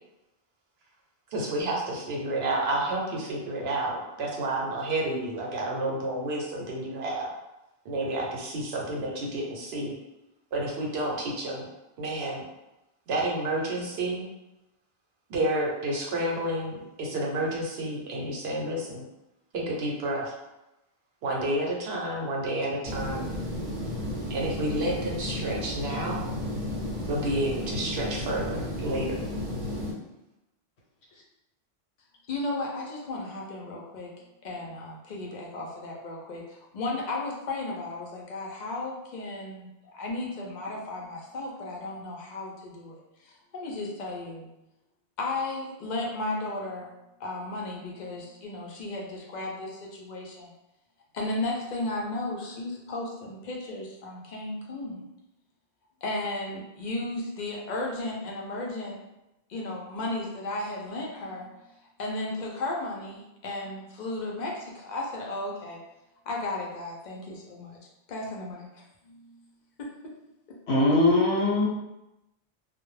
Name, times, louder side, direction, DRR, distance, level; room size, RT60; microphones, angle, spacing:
voice 1, 1.3-7.3 7.8-10.0 10.5-11.6 12.0-12.4 13.1-14.3 15.3-19.0 19.5-20.3 21.2-23.3 24.3-26.3 27.1-29.2, right 1 dB, 80° right, -2 dB, 0.9 m, -30 dB
sound 1, 22.8-29.9, left 1 dB, 55° right, 0.7 m, -33 dB
voice 2, 32.3-34.1 34.4-44.5 45.2-46.9 47.2-50.5 51.1-55.0 56.0-59.0 59.5-61.5 62.0-65.8 66.3-67.8 68.1-69.4 69.8-69.9, left 2 dB, 55° left, -2 dB, 0.6 m, -34 dB
voice 3, 70.7-71.7, left 2 dB, 90° left, -5 dB, 1.0 m, -21 dB
2.2 x 2.0 x 3.1 m, 0.93 s
omnidirectional pair, 1.1 m